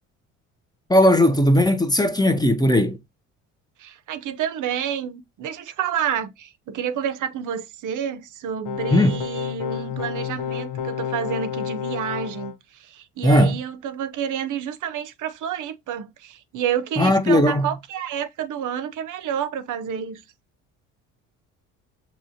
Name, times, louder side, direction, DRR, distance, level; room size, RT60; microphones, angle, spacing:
voice 1, 0.9-3.0 8.9-9.2 13.2-13.5 17.0-17.7, left 1 dB, 10° left, 0.7 m, -17 dB
voice 2, 3.8-20.2, right 9 dB, 55° right, 0.7 m, -29 dB
sound 1, 8.6-12.5, left 8 dB, 70° left, 0.9 m, -30 dB
6.0 x 3.0 x 2.7 m
hypercardioid pair, 65°, 38 cm